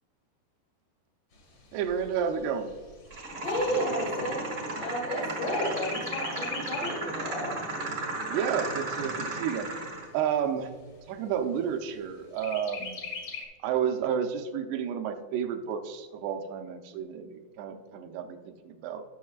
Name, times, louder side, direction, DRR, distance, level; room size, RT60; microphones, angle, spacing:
Chirp tweet, 1.3-5.1 5.5-7.1 7.6-7.7 8.0-9.0 9.6-9.7 10.0-10.1 10.6-11.1 12.4-13.4, left 5 dB, 50° left, 1.8 m, -40 dB
voice 1, 1.7-2.7 8.3-9.7 10.1-10.7 11.1-13.0 13.6-19.0, right 8 dB, 85° right, 5 dB, 2.7 m, -31 dB
sound 1, 3.1-10.1, right 2 dB, 55° right, 1.2 m, -35 dB
voice 2, 3.4-4.5 4.8-7.6, equal, 70° left, -5 dB, 4.4 m, -32 dB
17.5 x 6.4 x 2.4 m, 1.5 s
omnidirectional pair, 4.6 m